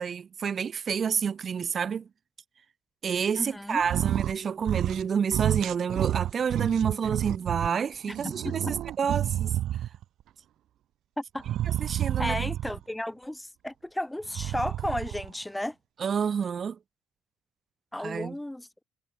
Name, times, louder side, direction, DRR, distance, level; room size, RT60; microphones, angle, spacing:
voice 1, 0.0-2.1 3.0-9.6 11.8-12.3 16.0-16.8 18.0-18.3, right 7 dB, 45° right, 3.2 m, -29 dB
voice 2, 3.4-3.8 8.1-8.7 11.2-11.4 12.2-15.8 17.9-18.7, left 1 dB, 5° left, 2.4 m, -33 dB
sound 1, 3.8-4.4 4.6-5.1 5.3-7.7 8.1-10.0 11.4-12.8 14.2-15.3, right 12 dB, 65° right, 1.5 m, -29 dB
supercardioid pair, 70°, 0 cm